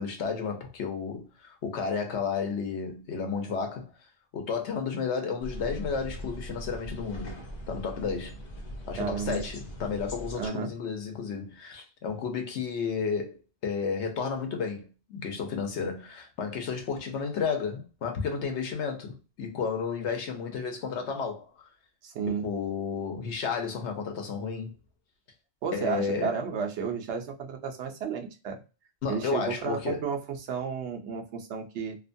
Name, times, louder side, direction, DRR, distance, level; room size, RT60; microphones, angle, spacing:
voice 1, 0.0-3.9 4.3-7.4 7.7-8.3 8.9-13.4 13.6-21.5 22.4-24.7 25.7-26.3 29.0-30.0, left 5 dB, 85° left, 1.1 m, -32 dB
sound 1, 5.4-10.5, equal, 45° left, 0.7 m, -40 dB
voice 2, 8.9-9.4 10.3-10.7 22.0-22.5 25.6-28.6 29.1-32.0, right 6 dB, 85° right, 0.9 m, -32 dB
2.8 x 2.2 x 2.5 m
omnidirectional pair, 1.1 m